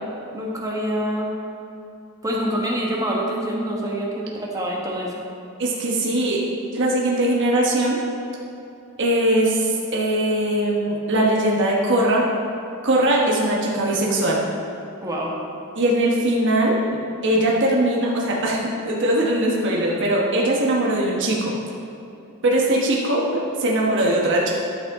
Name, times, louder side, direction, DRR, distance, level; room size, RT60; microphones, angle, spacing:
voice 1, 0.3-1.4 2.2-5.1 15.0-15.3, equal, 15° right, -3 dB, 1.3 m, -26 dB
voice 2, 5.6-6.4 6.7-8.0 9.0-12.2 12.8-14.4 15.7-16.8 17.2-21.5 22.4-24.5, right 1 dB, 60° right, -3 dB, 1.2 m, -20 dB
12.0 x 6.1 x 3.6 m, 2.8 s
head